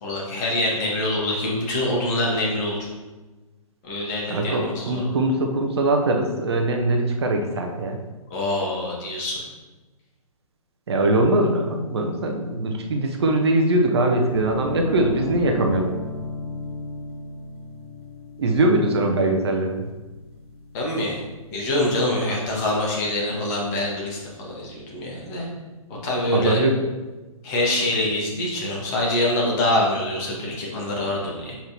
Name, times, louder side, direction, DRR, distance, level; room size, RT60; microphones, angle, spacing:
voice 1, 0.0-2.8 3.9-5.1 8.3-9.4 20.7-21.2 21.5-25.5 26.0-26.6 27.4-31.5, left 1 dB, 30° left, -3 dB, 1.9 m, -25 dB
voice 2, 4.3-8.0 10.9-15.9 18.4-19.9 22.2-22.4 26.3-26.8, right 1 dB, 50° right, 3 dB, 0.8 m, -22 dB
sound 1, 14.3-22.2, left 1 dB, 10° right, 2.1 m, -36 dB
7.6 x 5.7 x 3.0 m, 1.2 s
figure-of-eight pair, 125°, 18 cm